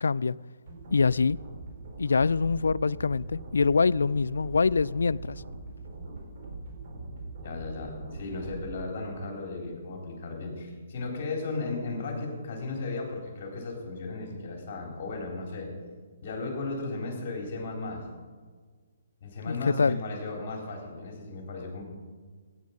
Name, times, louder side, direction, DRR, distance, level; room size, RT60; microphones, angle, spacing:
voice 1, 0.0-0.4 0.9-1.4 2.0-5.4 19.5-20.0, left 4 dB, 90° left, 0.3 m, -24 dB
sound 1, 0.7-8.7, right 2 dB, 50° right, 4.2 m, -42 dB
voice 2, 7.4-15.7 16.2-18.1 19.2-21.8, left 3 dB, 45° left, 3.7 m, -35 dB
17.0 x 9.5 x 5.3 m
hypercardioid pair, 155°, 0 cm